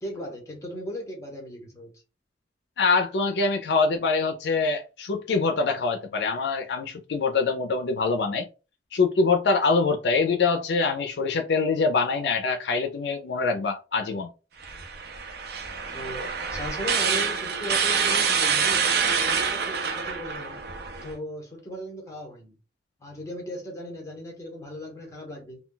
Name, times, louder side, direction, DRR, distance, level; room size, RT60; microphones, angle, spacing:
voice 1, 0.0-1.9 15.9-20.6 21.0-22.6 23.0-25.6, equal, 15° left, 1.0 m, -37 dB
voice 2, 2.8-8.5 8.9-14.3, left 4 dB, 70° left, 0.4 m, -24 dB
sound 1, 14.6-21.1, right 6 dB, 60° right, 0.5 m, -26 dB
2.2 x 2.2 x 3.8 m
head